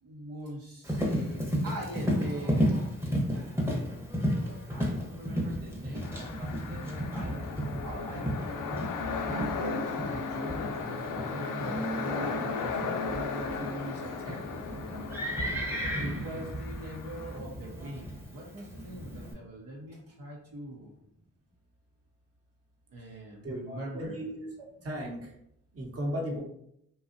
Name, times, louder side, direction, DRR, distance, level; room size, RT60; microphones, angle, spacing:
voice 1, 0.0-2.7 3.3-3.8 4.3-7.4 7.8-8.9 9.3-14.5 16.0-20.9 22.9-24.2, right 1 dB, 65° right, -3 dB, 0.7 m, -42 dB
Livestock farm animals working animals, 0.8-19.3, equal, 5° right, 0.8 m, -34 dB
sound 1, 6.0-17.4, left 4 dB, 60° left, 0.5 m, -36 dB
voice 2, 15.9-16.5 23.4-24.5 24.8-25.3 25.7-26.4, equal, 40° right, 0 dB, 0.9 m, -36 dB
2.7 x 2.3 x 2.5 m, 0.74 s
supercardioid pair, 40°, 36 cm